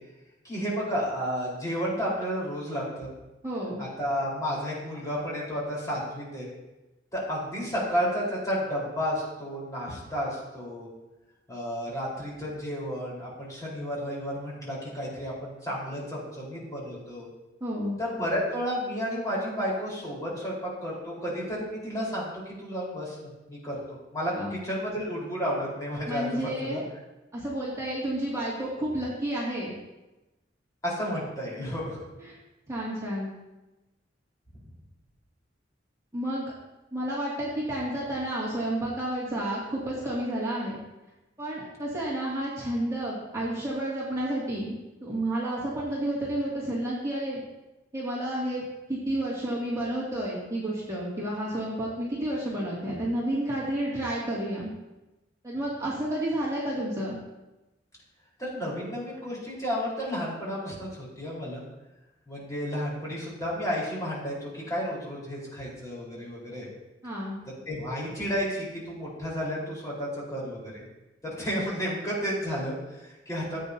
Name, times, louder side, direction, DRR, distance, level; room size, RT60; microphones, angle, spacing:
voice 1, 0.4-3.1 3.8-6.5 7.1-10.9 11.5-17.3 18.0-22.3 22.6-23.8 24.1-26.8 30.8-32.0 58.4-61.6 62.3-66.7 67.7-70.8 71.2-73.6, equal, 20° left, -6 dB, 4.1 m, -32 dB
voice 2, 3.4-3.8 17.6-18.0 24.4-24.5 26.1-26.8 27.3-29.7 32.2-32.3 32.7-33.3 36.1-36.5 36.9-40.8 41.4-44.7 45.0-47.4 47.9-54.7 55.4-57.2 67.0-67.4, right 1 dB, 15° right, -7 dB, 2.3 m, -31 dB
15.5 x 8.4 x 2.8 m, 1.0 s
head